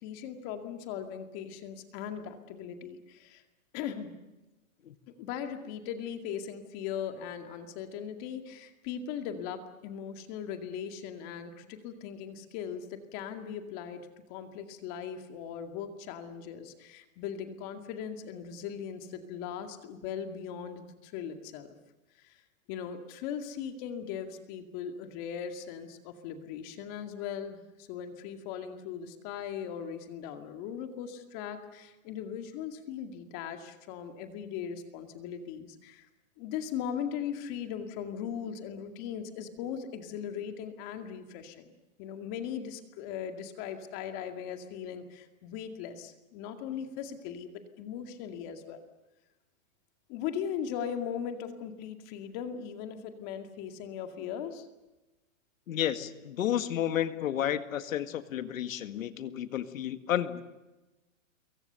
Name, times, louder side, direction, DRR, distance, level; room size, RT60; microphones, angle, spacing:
voice 1, 0.0-3.4 3.7-4.2 5.2-21.7 22.2-22.4 22.7-36.1 36.4-48.8 50.1-54.7, left 8 dB, 35° left, 6 dB, 2.3 m, -39 dB
voice 2, 55.7-60.4, left 10 dB, 70° left, 10 dB, 1.9 m, -31 dB
27.5 x 23.5 x 6.9 m, 1.1 s
hypercardioid pair, 155°, 41 cm